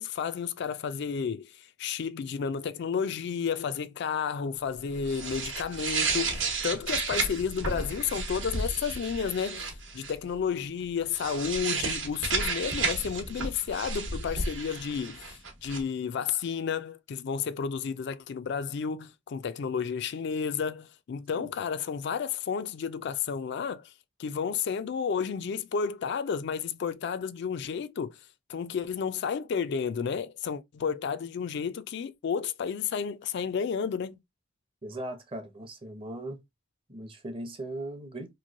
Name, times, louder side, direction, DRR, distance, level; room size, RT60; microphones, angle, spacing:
voice 1, 0.0-9.7 9.9-23.9 24.2-28.2 28.5-34.2, left 6 dB, 60° left, 0.3 m, -32 dB
sound 1, 4.9-10.1 11.1-15.8, right 4 dB, 70° right, 1.0 m, -32 dB
voice 2, 34.8-36.4 36.9-38.3, right 1 dB, 30° right, 0.7 m, -38 dB
3.0 x 2.6 x 2.5 m
head